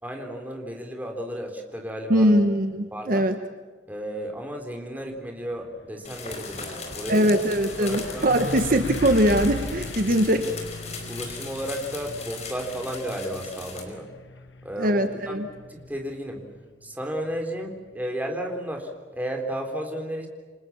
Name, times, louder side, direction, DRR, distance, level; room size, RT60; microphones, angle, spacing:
voice 1, 0.0-2.3 2.9-3.3 3.9-7.3 7.8-8.3 11.1-14.1 14.6-16.4 16.8-20.3, equal, 10° right, 2 dB, 3.9 m, -33 dB
voice 2, 2.1-3.4 7.1-10.5 14.8-15.5, equal, 50° right, 7 dB, 1.4 m, -21 dB
Truck, 5.2-5.3 5.6-18.2, left 2 dB, 75° left, 1.6 m, -39 dB
sound 1, 6.0-13.8, left 4 dB, 35° left, 5.0 m, -38 dB
28.5 x 25.5 x 7.3 m, 1.5 s
head